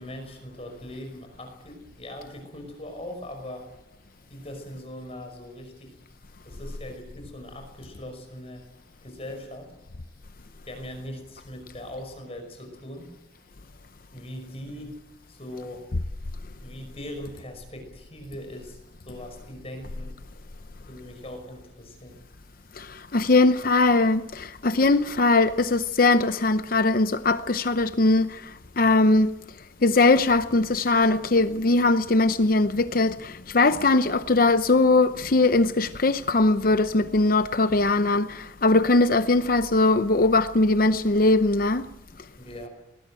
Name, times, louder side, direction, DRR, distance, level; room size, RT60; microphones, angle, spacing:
voice 1, 0.0-3.7 4.3-5.9 6.4-8.7 9.0-9.7 10.7-13.1 14.1-15.0 15.3-15.9 16.6-18.8 19.1-20.2 20.9-22.2 42.4-42.7, left 1 dB, 30° left, 5.4 m, -40 dB
voice 2, 22.8-29.3 29.8-41.9, left 2 dB, 50° left, 0.7 m, -21 dB
20.0 x 20.0 x 9.0 m
head